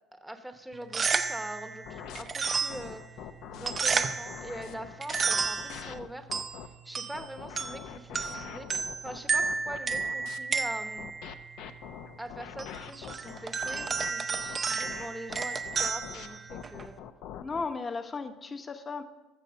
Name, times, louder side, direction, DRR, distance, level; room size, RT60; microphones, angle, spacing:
voice 1, 0.1-3.0 3.5-6.3 6.8-11.1 12.2-17.0, right 1 dB, 5° right, 7 dB, 1.0 m, -43 dB
sound 1, 0.7-17.0, right 5 dB, 25° right, 0.7 m, -33 dB
sound 2, 1.8-6.7 7.1-10.4 11.0-17.7, left 10 dB, 65° left, 0.7 m, -44 dB
voice 2, 17.4-19.0, left 4 dB, 25° left, 8 dB, 1.0 m, -35 dB
14.5 x 6.1 x 6.8 m, 1.1 s
cardioid pair, 130°, 0 cm